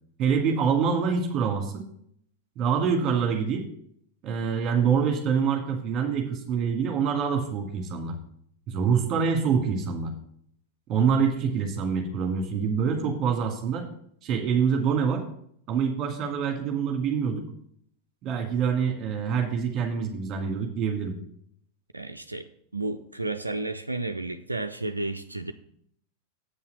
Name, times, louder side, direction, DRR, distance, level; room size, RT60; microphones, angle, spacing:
voice 1, 0.2-1.9 2.6-3.6 4.2-8.2 8.7-10.1 10.9-13.8 14.2-15.2 15.7-17.5 18.2-21.2, right 6 dB, 30° right, 3 dB, 2.2 m, -25 dB
voice 2, 21.9-22.4 22.7-25.5, right 2 dB, 80° right, 7 dB, 0.4 m, -32 dB
8.5 x 5.6 x 6.7 m, 0.67 s
figure-of-eight pair, 90°, 0 cm